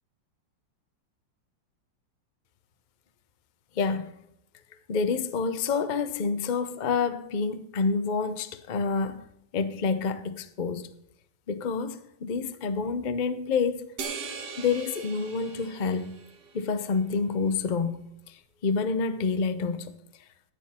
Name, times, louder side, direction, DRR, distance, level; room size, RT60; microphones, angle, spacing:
voice 1, 3.8-4.2 4.9-9.2 9.5-10.9 11.5-13.9 14.6-16.2 16.5-20.0, left 5 dB, 90° left, 0.4 m, -28 dB
sound 1, 14.0-16.7, right 5 dB, 65° right, 1.8 m, -39 dB
14.5 x 8.4 x 4.3 m
omnidirectional pair, 2.0 m